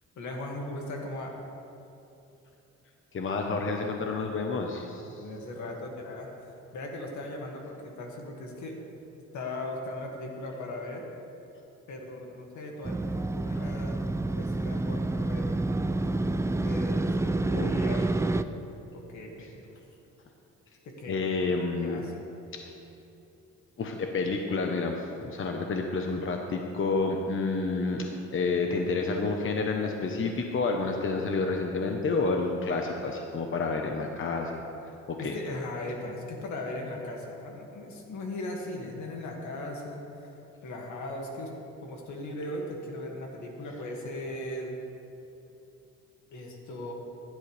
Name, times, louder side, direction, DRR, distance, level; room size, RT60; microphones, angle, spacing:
voice 1, 0.2-1.3 5.1-8.8 9.3-11.1 11.9-14.0 14.3-15.5 16.6-18.1 18.9-19.7 20.8-21.2 21.8-22.2 35.2-40.3 40.6-41.5 41.8-44.8 46.3-46.9, left 1 dB, 70° left, 0 dB, 2.1 m, -38 dB
voice 2, 3.1-5.2 13.5-13.6 17.5-17.7 21.1-22.0 23.8-34.6 35.2-35.3, left 3 dB, 45° left, 2 dB, 1.0 m, -29 dB
Motorcycle, 12.8-18.4, right 2 dB, 10° right, 0.4 m, -28 dB
16.0 x 10.5 x 3.4 m, 2.8 s
cardioid pair, 90°, 30 cm